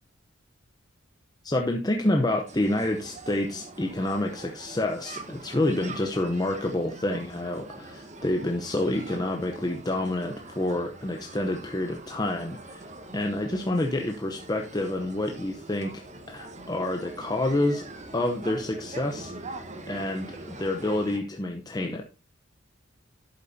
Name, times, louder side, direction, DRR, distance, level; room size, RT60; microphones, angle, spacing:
voice 1, 1.4-12.9 13.1-15.9 16.3-17.8 18.1-19.3 19.9-22.0, left 1 dB, 20° left, 3 dB, 0.8 m, -28 dB
sound 1, 2.5-21.2, right 2 dB, 35° right, 1.3 m, -44 dB
11.5 x 8.4 x 2.7 m, 0.29 s
head